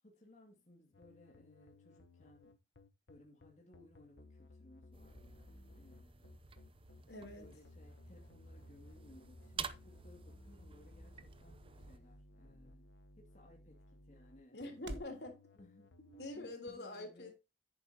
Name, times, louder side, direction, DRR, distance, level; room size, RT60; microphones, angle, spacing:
voice 1, 0.0-2.6 3.1-6.3 7.4-12.9 13.2-14.6 15.5-15.9 16.3-17.3, left 1 dB, 40° left, 2.3 m, -62 dB
sound 1, 0.9-16.7, left 2 dB, 85° left, 1.0 m, -59 dB
sound 2, 4.9-12.0, right 6 dB, 30° right, 0.7 m, -51 dB
voice 2, 7.1-7.5 14.5-15.4 16.0-17.3, left 2 dB, 65° left, 3.4 m, -46 dB
sound 3, 9.0-15.2, right 1 dB, 85° right, 1.5 m, -56 dB
10.5 x 8.8 x 2.8 m
head